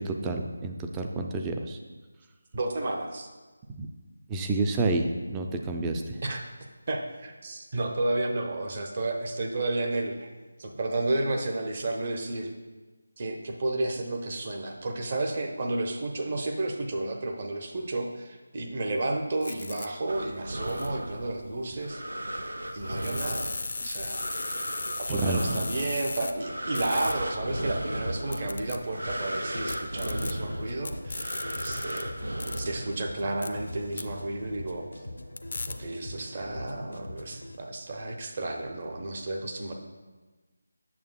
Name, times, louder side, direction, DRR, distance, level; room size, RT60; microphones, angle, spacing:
voice 1, 0.0-1.8 3.7-3.9 4.3-6.2 25.1-25.6, right 2 dB, 15° right, 4 dB, 0.4 m, -29 dB
voice 2, 2.5-3.3 6.2-6.4 6.9-10.3 10.6-12.5 13.2-22.0 22.7-24.3 25.0-32.1 32.6-34.9 35.7-39.7, right 2 dB, 40° right, 2 dB, 0.8 m, -32 dB
sound 1, 19.4-19.9 20.7-20.9 22.9-26.3 26.7-27.1 28.3-28.8 29.7-30.3 30.8-32.0 32.4-32.6 33.4-33.5 34.0-34.1 35.4-35.7, left 3 dB, 55° left, 0.4 m, -36 dB
sound 2, 20.1-33.4, right 1 dB, 80° right, 0.6 m, -36 dB
sound 3, 26.9-37.6, left 1 dB, 90° left, 0.6 m, -42 dB
8.5 x 6.6 x 2.2 m, 1.2 s
figure-of-eight pair, 160°, 0 cm